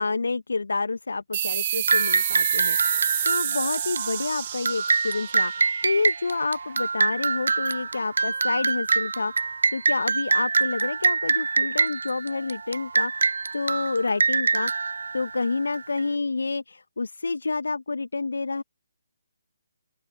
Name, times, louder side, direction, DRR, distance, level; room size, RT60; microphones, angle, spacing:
voice 1, 0.0-14.7 15.1-18.6, left 3 dB, 70° left, 1.5 m, -29 dB
sound 1, 1.3-6.5, right 11 dB, 35° right, 1.6 m, -29 dB
sound 2, 1.9-16.0, right 4 dB, 65° right, 0.4 m, -25 dB
open air
figure-of-eight pair, 145°, 0 cm